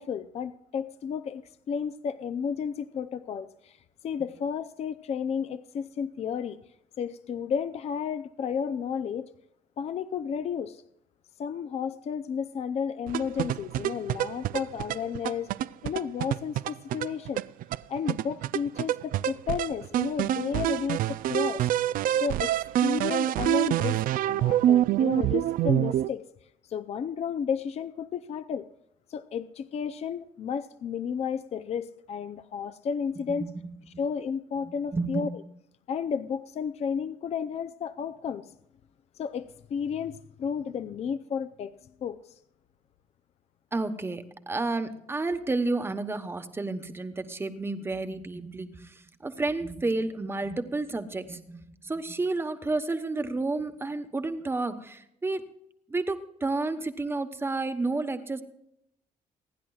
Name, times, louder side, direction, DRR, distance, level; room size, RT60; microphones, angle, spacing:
voice 1, 0.0-3.8 4.0-6.6 7.0-9.3 9.8-10.8 11.4-15.5 15.8-17.4 17.9-21.7 22.1-22.5 22.8-24.0 24.3-26.2 26.7-28.7 29.1-33.5 34.0-35.3 35.9-38.5 39.2-41.7 42.0-42.3, left 7 dB, 50° left, 11 dB, 0.6 m, -32 dB
sound 1, 13.1-26.1, right 12 dB, 80° right, 0.4 m, -26 dB
voice 2, 33.2-33.7 34.6-35.3 43.7-55.4 55.9-58.4, right 3 dB, 15° right, 8 dB, 1.1 m, -31 dB
28.5 x 10.5 x 2.4 m, 0.77 s
cardioid pair, 145°, 14 cm